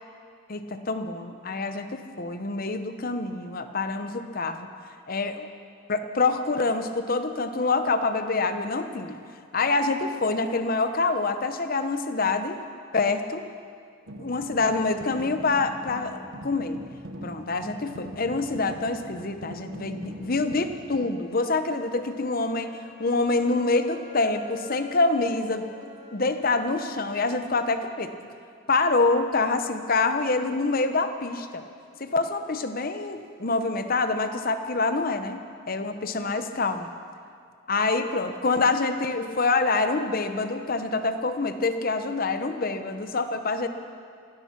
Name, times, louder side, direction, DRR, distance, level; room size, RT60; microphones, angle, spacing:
voice 1, 0.5-4.7 5.1-5.5 5.9-9.2 9.5-12.6 12.9-13.4 14.2-16.8 17.2-25.7 26.1-28.1 28.7-31.6 32.0-36.9 37.7-43.7, left 3 dB, 45° left, 9 dB, 0.8 m, -26 dB
sound 1, 14.1-21.1, equal, 70° right, 1.0 m, -42 dB
Wind instrument woodwind instrument, 20.0-28.0, left 4 dB, 65° left, 4.4 m, -49 dB
16.0 x 13.0 x 5.9 m, 2.3 s
head